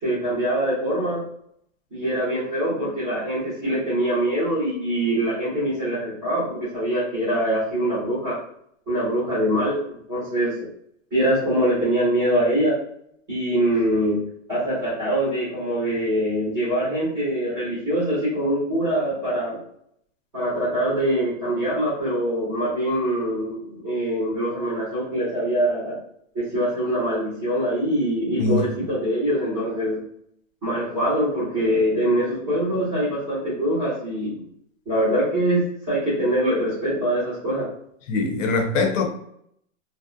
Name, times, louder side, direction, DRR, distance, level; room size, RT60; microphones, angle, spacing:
voice 1, 0.0-1.2 1.9-8.4 8.9-10.5 11.1-12.7 13.3-14.2 14.5-19.6 20.3-26.0 26.3-30.0 30.6-34.3 34.9-37.7, right 1 dB, 5° right, 0.6 m, -23 dB
voice 2, 38.1-39.0, left 3 dB, 70° left, 0.7 m, -22 dB
2.5 x 2.1 x 2.5 m
supercardioid pair, 180°, 39 cm